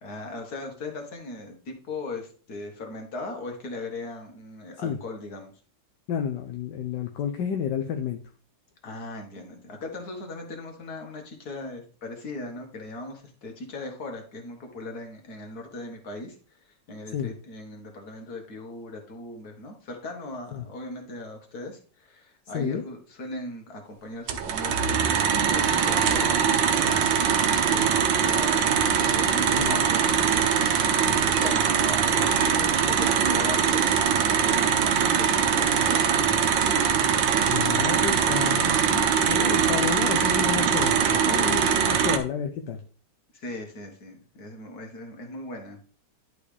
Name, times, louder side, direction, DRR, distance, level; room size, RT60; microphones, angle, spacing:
voice 1, 0.0-5.5 8.8-16.4 16.9-28.8 29.1-36.5 43.3-45.8, left 2 dB, 55° left, 3 dB, 2.1 m, -39 dB
voice 2, 6.1-8.2 17.1-17.3 20.5-20.7 22.5-22.8 29.5-29.9 37.5-42.8, left 8 dB, 75° left, 4 dB, 1.3 m, -31 dB
sound 1, 24.3-42.2, right 7 dB, 90° right, 1.6 m, -22 dB
11.0 x 4.9 x 3.4 m, 0.41 s
omnidirectional pair, 2.0 m